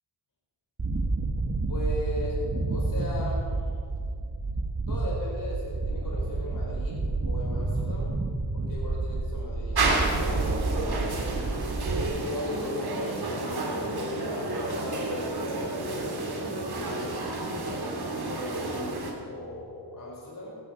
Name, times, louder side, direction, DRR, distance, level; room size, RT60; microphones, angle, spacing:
sound 1, 0.8-12.0, right 3 dB, 35° right, 1.7 m, -29 dB
voice 1, 1.7-3.5 4.9-8.1 8.5-11.3 12.0-17.1 18.3-19.0 19.2-20.7, left 1 dB, 45° left, -4 dB, 5.0 m, -38 dB
sound 2, 7.4-19.6, left 2 dB, ahead, 3.9 m, -49 dB
sound 3, 9.8-19.1, right 2 dB, 55° right, 3.0 m, -31 dB
17.0 x 15.5 x 4.5 m, 2.2 s
cardioid pair, 75°, 46 cm